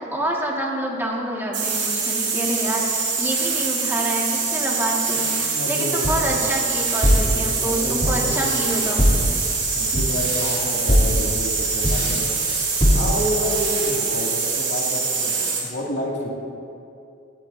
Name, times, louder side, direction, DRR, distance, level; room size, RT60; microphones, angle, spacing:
voice 1, 0.0-9.0, right 1 dB, 10° right, -3 dB, 1.8 m, -27 dB
sound 1, 1.5-15.7, right 4 dB, 80° right, 3.4 m, -24 dB
voice 2, 5.1-6.4 7.3-8.9 9.7-12.3 12.9-16.3, equal, 65° left, -3 dB, 2.4 m, -29 dB
sound 2, 6.0-13.3, equal, 30° left, 2.4 m, -22 dB
17.5 x 14.0 x 2.7 m, 2.6 s
head